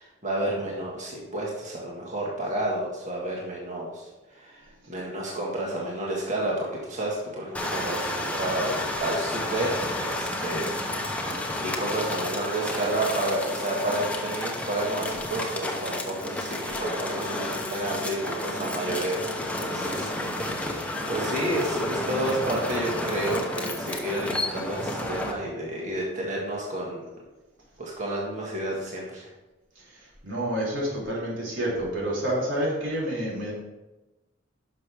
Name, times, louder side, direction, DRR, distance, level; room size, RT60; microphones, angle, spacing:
voice 1, 0.0-11.3 11.6-27.2 27.8-29.3, right 1 dB, 40° right, -4 dB, 1.6 m, -31 dB
sound 1, 7.5-25.3, left 1 dB, 5° left, 0.9 m, -31 dB
voice 2, 29.7-33.5, right 1 dB, 85° right, -5 dB, 3.2 m, -29 dB
10.5 x 6.3 x 3.5 m, 1.1 s
head